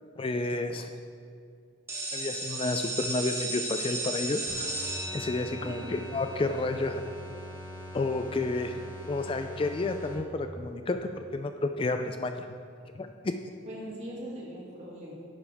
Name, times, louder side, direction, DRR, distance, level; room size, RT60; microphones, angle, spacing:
voice 1, 0.2-0.9 2.1-4.7 5.1-7.1 7.9-12.5 13.0-13.3, left 2 dB, 30° left, 7 dB, 0.3 m, -31 dB
School Bell, 1.9-7.5, right 2 dB, 15° right, 1.4 m, -36 dB
sound 1, 4.5-10.6, left 1 dB, 75° left, 1.5 m, -43 dB
voice 2, 5.6-5.9 13.6-15.1, equal, 35° right, -5 dB, 2.5 m, -41 dB
11.0 x 10.5 x 3.5 m, 2.3 s
head